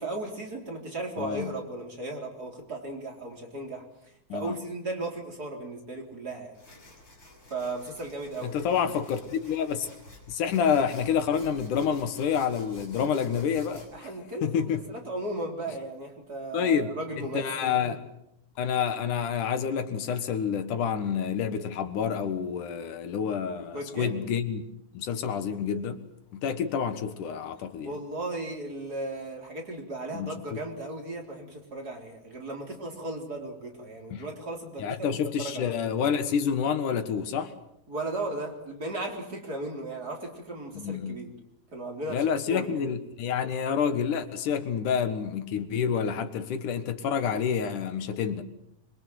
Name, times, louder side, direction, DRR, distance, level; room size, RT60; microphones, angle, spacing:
voice 1, 0.0-3.9 4.3-6.6 7.5-8.6 13.9-18.0 23.7-24.2 27.8-35.7 37.9-41.3 41.7-42.9, right 2 dB, 30° right, 4.2 m, -36 dB
voice 2, 1.2-1.5 4.3-4.6 8.4-9.9 10.3-14.1 14.4-14.8 16.5-18.0 18.6-24.6 24.9-26.0 26.3-27.9 30.1-30.3 34.1-34.2 34.8-37.5 40.7-41.2 42.1-48.4, left 7 dB, 80° left, 3.0 m, -28 dB
sound 1, 6.5-13.9, left 2 dB, 35° left, 7.2 m, -51 dB
25.5 x 23.5 x 7.8 m
omnidirectional pair, 3.5 m